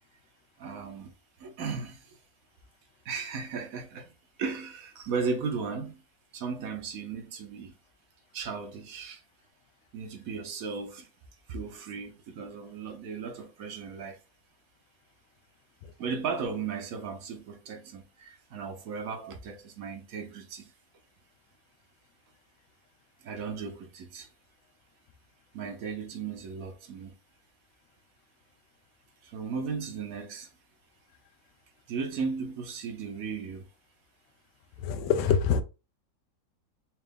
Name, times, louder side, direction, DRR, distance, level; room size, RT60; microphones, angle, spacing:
voice 1, 0.6-2.2 3.0-4.1 4.4-6.0 6.3-7.7 8.3-9.2 9.9-11.1 11.5-14.2 16.0-20.7 23.2-24.3 25.5-27.1 29.2-30.5 31.9-33.6, right 5 dB, 60° right, 1.0 m, -36 dB
voice 2, 34.8-35.6, left 7 dB, 85° left, 1.3 m, -25 dB
4.4 x 2.5 x 3.4 m
omnidirectional pair, 1.9 m